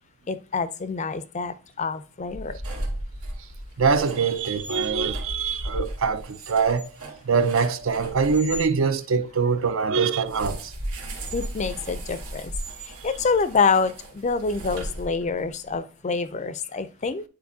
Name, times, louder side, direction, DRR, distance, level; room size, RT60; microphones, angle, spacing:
voice 1, 0.3-2.6 11.3-12.5 12.8-17.2, left 4 dB, 30° left, 0.4 m, -26 dB
sound 1, 2.2-8.7 10.2-15.5, right 1 dB, 85° right, 1.4 m, -36 dB
voice 2, 3.8-6.9 7.2-10.7, right 5 dB, 60° right, 0.5 m, -23 dB
9.4 x 4.3 x 2.7 m
head